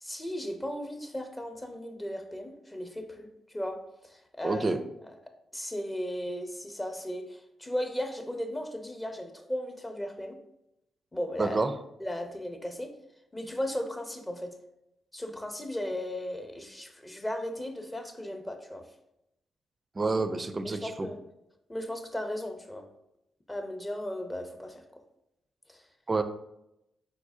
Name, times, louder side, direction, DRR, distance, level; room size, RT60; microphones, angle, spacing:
voice 1, 0.0-4.7 5.5-10.4 11.1-11.6 12.0-12.9 13.3-14.6 15.1-18.8 20.6-21.2 21.7-22.9 23.5-25.0 25.7-25.8, left 1 dB, 15° left, 6 dB, 0.7 m, -36 dB
voice 2, 4.4-4.8 11.4-11.7 20.0-21.1 26.1-26.2, right 3 dB, 30° right, 10 dB, 0.4 m, -28 dB
4.8 x 4.2 x 2.7 m, 0.85 s
cardioid pair, 75°, 0 cm